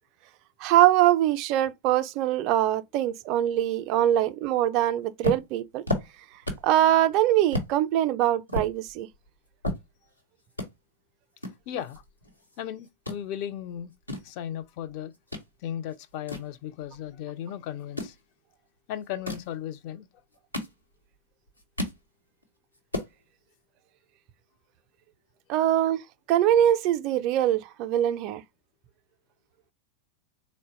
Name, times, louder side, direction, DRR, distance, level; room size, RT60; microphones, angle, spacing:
voice 1, 0.6-5.8 6.6-9.1 25.5-26.0 26.3-28.4, right 12 dB, 40° right, 0.3 m, -23 dB
sound 1, 5.2-6.8 7.1-7.2 7.5-7.7 8.2-10.2 10.5-10.7 11.4-12.6 12.8-13.2 13.8-15.5 15.9-17.2 17.8-18.2 19.0-19.5 20.2-21.1 21.5-22.0 22.4-22.5 22.7-23.1, left 1 dB, 90° left, 0.9 m, -33 dB
voice 2, 11.7-12.0 12.6-13.9 14.2-15.1 15.6-18.2 18.9-20.1, left 10 dB, 45° left, 0.4 m, -36 dB
3.8 x 2.1 x 3.9 m
figure-of-eight pair, 90°, 0 cm